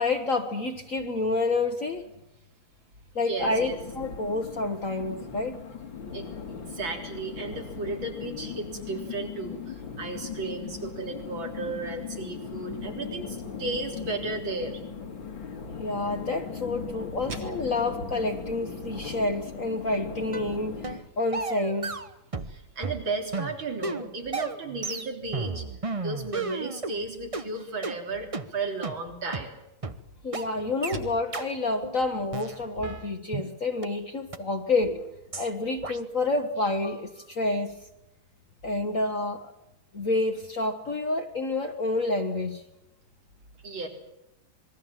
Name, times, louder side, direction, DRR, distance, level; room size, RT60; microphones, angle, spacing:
voice 1, 0.0-2.1 3.1-5.6 15.8-22.0 30.2-35.0 35.4-37.8 38.6-39.5 39.9-42.6, left 2 dB, 45° left, 5 dB, 1.6 m, -28 dB
voice 2, 3.2-3.8 6.1-14.8 17.3-17.4 19.0-19.1 22.5-25.6 26.0-29.6 43.6-43.9, right 3 dB, 75° right, 3 dB, 4.5 m, -34 dB
sound 1, 3.4-21.0, left 6 dB, 75° left, 2.9 m, -39 dB
sound 2, 20.3-20.5 20.8-21.0 21.3-22.6 22.8-27.0 27.3-27.5 27.8-28.0 28.3-28.5 28.8-29.0 29.3-29.5 29.8-30.0 30.3-30.5 30.8-31.0 31.3-31.5 31.8-32.0 32.3-33.5 33.8-33.9 34.3-34.4 34.8-35.0 35.3-35.5 35.8-36.0, right 3 dB, 25° right, 0.7 m, -33 dB
26.5 x 21.5 x 7.5 m, 0.88 s
omnidirectional pair, 2.2 m